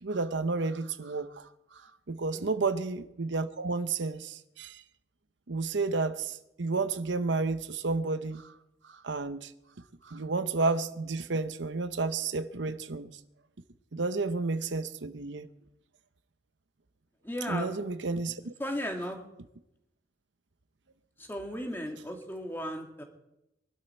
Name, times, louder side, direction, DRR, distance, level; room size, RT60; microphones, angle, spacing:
voice 1, 0.0-4.8 5.5-8.5 8.8-9.5 10.0-13.1 13.9-15.5 17.5-18.5, right 3 dB, 85° right, 0.8 m, -31 dB
voice 2, 17.2-17.7 18.6-19.2 21.2-23.0, equal, 10° left, 2.0 m, -35 dB
22.5 x 12.0 x 4.5 m
head